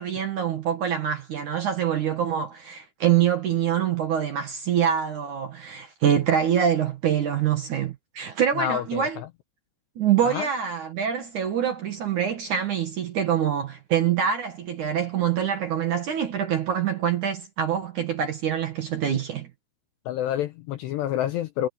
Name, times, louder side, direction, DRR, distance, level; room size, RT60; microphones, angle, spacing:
voice 1, 0.0-9.2 10.0-19.5, right 9 dB, 65° right, 2.0 m, -25 dB
voice 2, 8.6-9.1 10.3-10.5 20.1-21.7, left 12 dB, 85° left, 2.5 m, -28 dB
omnidirectional pair, 5.9 m